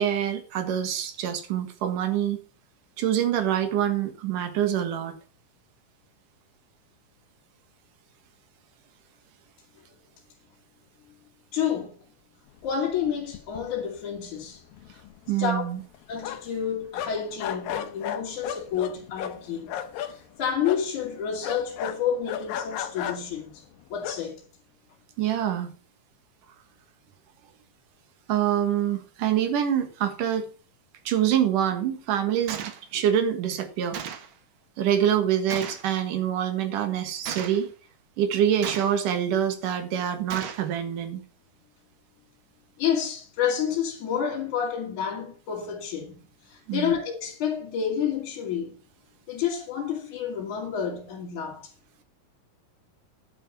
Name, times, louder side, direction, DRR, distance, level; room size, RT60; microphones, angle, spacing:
voice 1, 0.0-2.4 3.0-5.2 15.3-15.8 25.2-25.7 28.3-30.5 31.1-34.0 34.8-37.7 38.2-41.2 46.7-46.9, right 10 dB, 70° right, 2.9 m, -25 dB
voice 2, 11.5-12.0 12.6-14.6 14.9-15.0 15.4-15.6 16.1-19.7 20.1-23.7 23.9-24.4 42.8-48.8 49.3-51.7, left 8 dB, 60° left, 3.6 m, -29 dB
sound 1, 13.0-13.1 13.3-14.0 14.3-14.4 14.7-16.6 16.9-20.1 20.6-20.9 21.4-23.4 24.0-24.2, left 9 dB, 80° left, 2.7 m, -34 dB
Gunshot gunfire, 32.5-32.8 33.9-34.3 35.5-35.9 37.2-37.7 38.6-39.1 40.3-40.7, right 8 dB, 90° right, 1.1 m, -35 dB
10.0 x 7.9 x 6.0 m
omnidirectional pair, 4.1 m